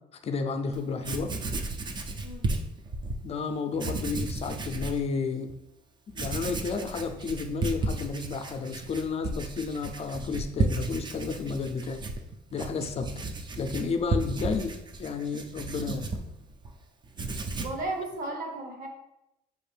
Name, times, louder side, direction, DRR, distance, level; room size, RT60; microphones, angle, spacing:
voice 1, 0.2-1.3 3.2-5.5 6.1-12.0 12.5-13.3 13.6-16.0, left 4 dB, 40° left, 7 dB, 0.5 m, -32 dB
Writing, 0.7-3.2 3.7-5.0 5.5-5.6 6.1-16.7 17.0-17.9, right 2 dB, 25° right, 0.4 m, -33 dB
voice 2, 17.6-18.9, right 2 dB, 55° right, 2 dB, 1.1 m, -35 dB
5.2 x 2.5 x 3.3 m, 0.88 s
cardioid pair, 110°, 17 cm